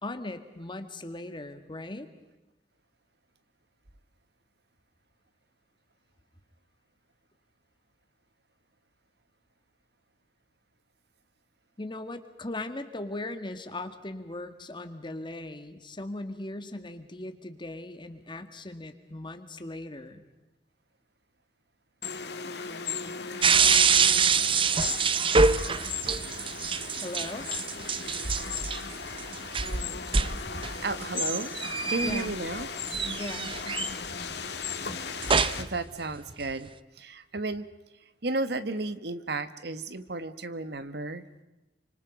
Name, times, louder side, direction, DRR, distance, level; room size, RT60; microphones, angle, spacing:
voice 1, 0.0-2.1 11.8-20.3 27.0-27.5 32.0-32.3 33.2-33.6, left 2 dB, 30° left, 8 dB, 2.0 m, -38 dB
sound 1, 22.0-35.6, left 6 dB, 70° left, 2.2 m, -37 dB
sound 2, 23.4-32.6 32.9-34.1 34.9-35.8 36.2-36.7, right 5 dB, 30° right, 0.7 m, -25 dB
voice 2, 30.8-31.5 31.9-32.7 35.6-36.7 37.0-37.7 38.2-41.2, right 2 dB, 70° right, 12 dB, 1.4 m, -33 dB
29.5 x 26.0 x 5.3 m, 1.0 s
head